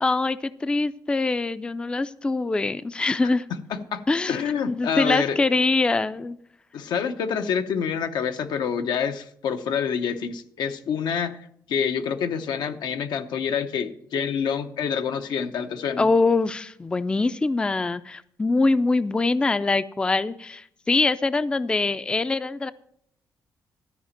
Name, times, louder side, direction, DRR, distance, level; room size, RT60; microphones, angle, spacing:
voice 1, 0.0-3.5 4.1-4.4 4.7-6.4 16.0-22.7, left 3 dB, 15° left, 14 dB, 0.3 m, -23 dB
voice 2, 3.7-4.0 4.3-5.4 6.7-11.4 11.7-16.1, left 7 dB, 85° left, 7 dB, 0.8 m, -27 dB
13.0 x 5.0 x 7.3 m, 0.71 s
cardioid pair, 130°, 7 cm